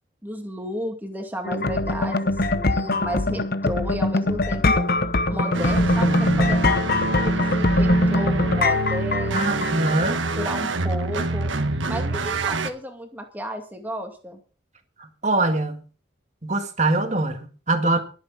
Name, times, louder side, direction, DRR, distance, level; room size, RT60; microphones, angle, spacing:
voice 1, 0.2-4.9 5.3-9.6 10.4-11.5 11.9-14.4, equal, 10° right, 2.4 m, -33 dB
sound 1, 1.4-9.9, left 2 dB, 50° left, 0.9 m, -22 dB
sound 2, 5.5-12.7, right 2 dB, 75° right, 1.4 m, -26 dB
voice 2, 9.3-10.2 15.0-15.8 16.4-18.0, right 2 dB, 35° right, 1.9 m, -23 dB
21.5 x 8.5 x 4.1 m
head